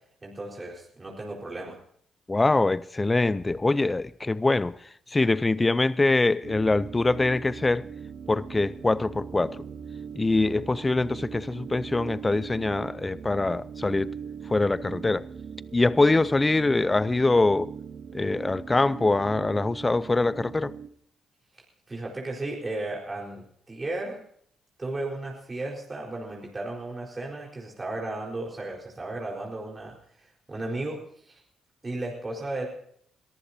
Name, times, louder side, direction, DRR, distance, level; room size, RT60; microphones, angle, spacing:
voice 1, 0.2-1.8 21.9-24.2 24.8-31.4 31.8-32.7, right 2 dB, 30° right, 4.3 m, -35 dB
voice 2, 2.3-7.8 8.3-9.6 10.2-14.2 14.5-15.3 15.7-17.7 18.1-20.7, left 2 dB, 25° left, 0.6 m, -24 dB
sound 1, 6.4-20.9, right 7 dB, 60° right, 1.2 m, -40 dB
22.5 x 14.5 x 2.8 m
supercardioid pair, 55°, 0 cm